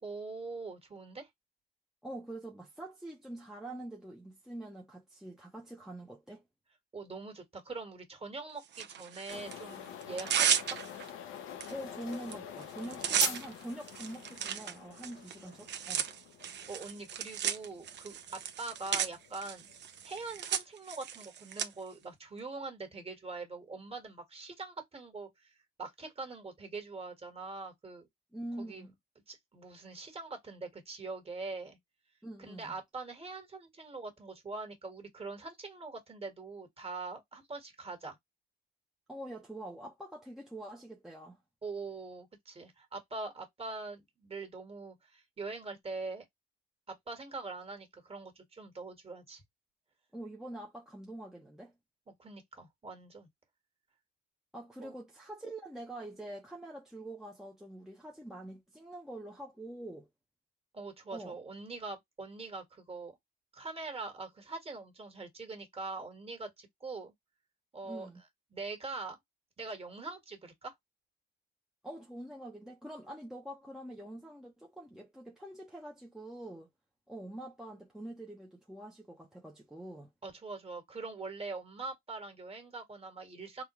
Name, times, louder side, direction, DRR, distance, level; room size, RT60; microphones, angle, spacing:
voice 1, 0.0-1.3 6.9-10.8 16.7-18.2 18.6-19.7 20.0-28.1 28.6-28.9 29.3-31.8 32.4-38.2 41.6-46.2 46.9-49.4 52.1-53.3 54.8-54.9 60.7-63.2 63.5-67.1 67.7-68.1 68.5-69.2 69.6-70.7 80.2-83.6, right 3 dB, 30° right, 1.5 m, -43 dB
voice 2, 2.0-6.4 11.7-16.1 28.3-28.9 32.2-32.8 39.1-41.4 50.1-51.7 54.5-60.1 61.1-61.4 67.8-68.2 71.8-76.7 77.1-80.1, right 1 dB, 5° right, 0.7 m, -45 dB
Tearing, 8.7-9.6 10.0-11.1 11.6-11.7 12.0-12.3 12.6-21.7, right 9 dB, 60° right, 0.7 m, -34 dB
sound 1, 9.3-20.4, left 9 dB, 85° left, 0.7 m, -46 dB
3.7 x 2.3 x 3.0 m
cardioid pair, 90°, 20 cm